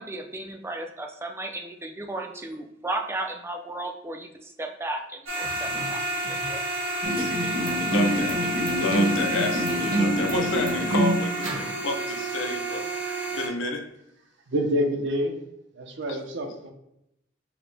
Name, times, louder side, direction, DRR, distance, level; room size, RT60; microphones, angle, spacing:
voice 1, 0.0-6.6, right 2 dB, 15° right, 4 dB, 0.3 m, -35 dB
sound 1, 5.3-13.5, right 1 dB, 85° right, 0.9 m, -30 dB
sound 2, 7.0-11.2, right 1 dB, 45° right, 0.9 m, -26 dB
voice 2, 7.8-8.4 8.7-11.5 11.8-12.9 13.3-13.9 16.1-16.2, left 3 dB, 75° left, 4 dB, 0.6 m, -30 dB
voice 3, 14.5-15.3 15.7-16.7, equal, 65° right, 3 dB, 0.6 m, -27 dB
4.8 x 2.1 x 3.2 m, 0.81 s
head